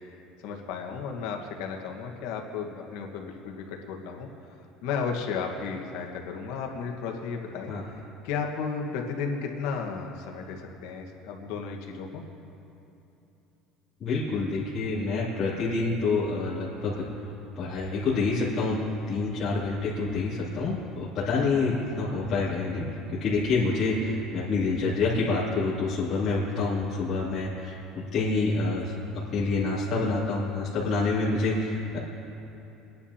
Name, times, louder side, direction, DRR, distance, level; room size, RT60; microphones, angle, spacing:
voice 1, 0.4-4.3 4.8-7.7 8.2-12.2, left 5 dB, 75° left, 2 dB, 1.4 m, -34 dB
voice 2, 14.0-17.1 17.5-18.8 19.1-32.0, left 3 dB, 35° left, -11 dB, 2.8 m, -27 dB
24.5 x 10.5 x 2.9 m, 3.0 s
cardioid pair, 150°, 0 cm